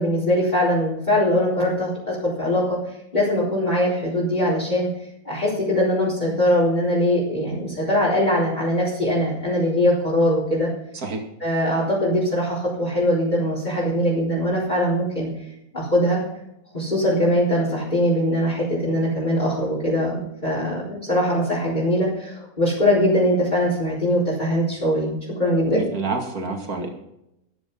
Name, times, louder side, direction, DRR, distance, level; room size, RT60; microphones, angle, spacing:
voice 1, 0.0-2.8 3.1-4.9 5.2-10.7 11.4-15.3 15.7-16.2 16.7-25.1 25.4-25.8, equal, 25° left, -7 dB, 4.5 m, -21 dB
voice 2, 25.7-26.9, right 3 dB, 65° right, 2 dB, 2.7 m, -27 dB
14.5 x 10.5 x 5.5 m, 0.82 s
omnidirectional pair, 1.7 m